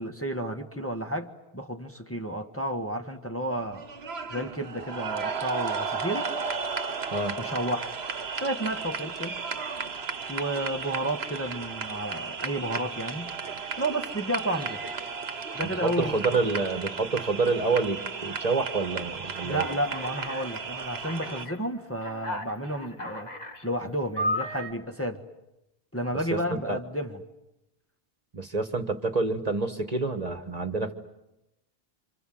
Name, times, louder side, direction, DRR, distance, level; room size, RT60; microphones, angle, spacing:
voice 1, 0.0-3.8 4.3-6.3 7.4-7.9 8.3-9.4 10.3-13.3 13.8-14.8 15.5-16.1 19.4-23.3 23.6-25.2 25.9-27.2, right 1 dB, 15° left, 1.5 m, -31 dB
sound 1, 3.5-21.5, right 5 dB, 90° right, 1.4 m, -34 dB
voice 2, 15.6-19.6 26.3-26.8 28.3-30.9, right 3 dB, 40° right, 1.6 m, -28 dB
Alarm, 19.5-20.5 21.0-21.5 22.0-23.6 24.2-24.7, left 1 dB, 45° left, 2.5 m, -34 dB
29.0 x 26.5 x 7.8 m
omnidirectional pair, 1.0 m